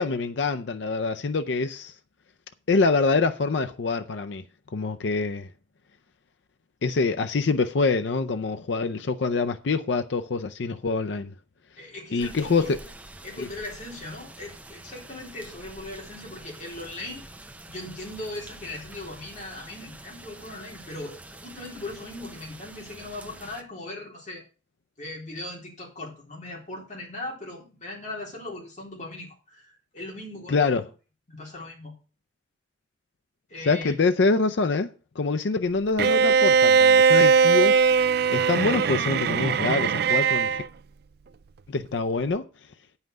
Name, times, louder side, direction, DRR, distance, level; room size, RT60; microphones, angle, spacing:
voice 1, 0.0-1.9 2.7-4.4 4.7-5.5 6.8-11.3 12.1-12.8 13.4-13.5 30.5-30.8 33.7-34.9 35.2-40.6 41.7-42.5, left 4 dB, 75° left, 0.5 m, -25 dB
voice 2, 11.8-12.8 13.2-17.2 17.7-24.4 25.0-30.7 31.3-31.9 33.5-33.9, left 2 dB, 40° left, 3.6 m, -39 dB
sound 1, 12.2-23.6, right 2 dB, 10° right, 0.8 m, -46 dB
Bowed string instrument, 36.0-40.7, right 6 dB, 60° right, 0.4 m, -20 dB
9.2 x 5.7 x 6.4 m
head